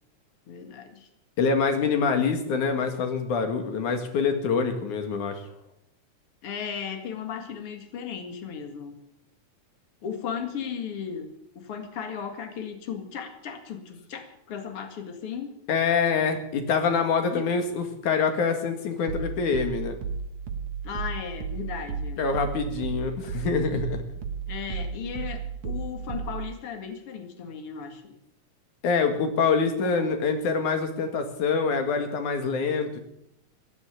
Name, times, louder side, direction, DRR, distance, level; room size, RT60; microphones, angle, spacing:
voice 1, 0.5-1.1 6.4-9.0 10.0-11.3 11.6-15.5 17.3-17.5 20.8-22.2 24.5-28.1 29.8-30.1, left 7 dB, 50° left, 6 dB, 2.7 m, -36 dB
voice 2, 1.4-5.4 15.7-19.9 22.2-24.0 28.8-33.0, left 5 dB, 80° left, 6 dB, 3.4 m, -25 dB
sound 1, 19.1-26.6, right 5 dB, 70° right, 2.4 m, -34 dB
15.5 x 10.5 x 8.3 m, 0.78 s
omnidirectional pair, 3.4 m